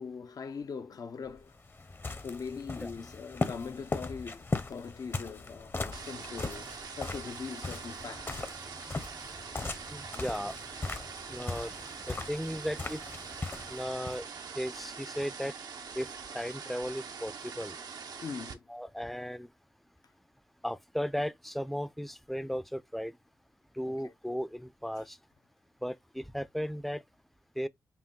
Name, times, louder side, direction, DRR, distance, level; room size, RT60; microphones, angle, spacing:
voice 1, 0.0-1.6 2.2-8.5 9.2-9.3 18.2-18.7 23.9-24.1, left 5 dB, 65° left, 0.7 m, -41 dB
sound 1, 1.3-14.2, left 3 dB, 35° left, 0.8 m, -39 dB
sound 2, 5.9-18.5, right 6 dB, 75° right, 0.7 m, -44 dB
voice 2, 9.9-10.5 11.3-11.7 12.1-13.0 13.7-14.3 14.6-15.5 15.9-16.1 16.3-17.8 18.7-19.5 20.6-23.2 23.7-25.2 25.8-27.0 27.6-27.7, equal, ahead, 0.5 m, -36 dB
5.8 x 2.2 x 3.8 m
cardioid pair, 65°, 7 cm